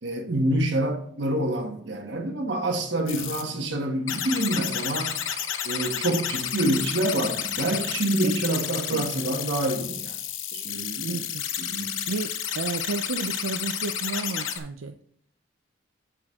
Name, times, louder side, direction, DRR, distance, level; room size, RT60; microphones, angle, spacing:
voice 1, 0.0-5.2 5.6-10.2 10.5-11.3 11.6-12.0, right 1 dB, 60° right, 1.3 m, -27 dB
sound 1, 3.1-3.4 4.1-14.6, left 9 dB, 75° left, 0.9 m, -31 dB
voice 2, 8.2-9.1 11.1-11.4 12.1-15.0, right 4 dB, 85° right, 0.5 m, -32 dB
7.7 x 6.2 x 3.6 m
head